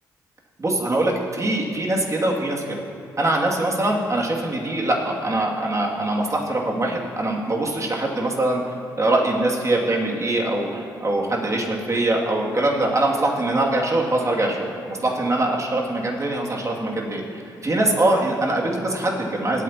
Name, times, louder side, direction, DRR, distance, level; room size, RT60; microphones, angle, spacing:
voice 1, 0.6-2.6 3.2-8.6 9.0-19.6, right 2 dB, 35° right, -2 dB, 2.5 m, -23 dB
18.0 x 9.2 x 3.0 m, 2.6 s
supercardioid pair, 50°, 9 cm